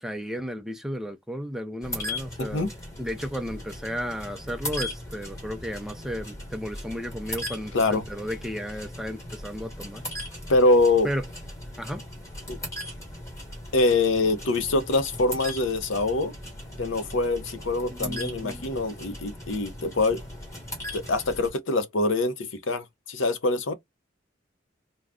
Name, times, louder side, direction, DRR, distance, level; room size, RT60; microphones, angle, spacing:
voice 1, 0.0-2.7 3.0-10.0 11.0-11.2 11.8-12.0 17.9-18.7, equal, ahead, 0.4 m, -34 dB
sound 1, 1.8-21.5, left 1 dB, 15° left, 1.1 m, -38 dB
voice 2, 2.4-2.7 7.7-8.0 10.5-11.1 12.5-12.6 13.7-16.3 16.8-20.2 20.9-23.7, left 2 dB, 75° left, 0.6 m, -24 dB
2.5 x 2.1 x 3.5 m
head